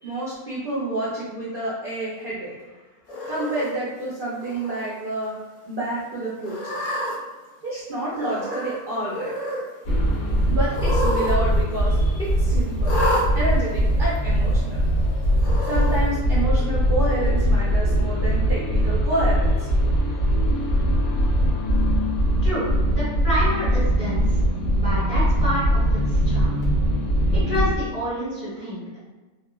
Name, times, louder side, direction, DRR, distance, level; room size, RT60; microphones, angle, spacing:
voice 1, 0.0-2.5 3.3-5.4 5.6-6.8 7.6-9.3 10.5-12.9 13.3-14.8 15.6-19.8, right 1 dB, 55° right, -8 dB, 0.6 m, -29 dB
Cat, 3.1-3.7 4.4-4.9 5.2-5.3 6.4-7.1 8.1-8.8 9.1-9.6 10.7-11.3 11.6-11.7 12.8-13.2 14.2-14.3 15.4-16.0, left 1 dB, 85° left, 1.2 m, -28 dB
sound 1, 9.8-27.7, equal, 55° left, 0.5 m, -21 dB
voice 2, 22.4-24.4 24.8-26.6 27.3-29.0, equal, 25° left, -10 dB, 1.1 m, -29 dB
3.2 x 2.2 x 2.2 m, 1.3 s
omnidirectional pair, 1.6 m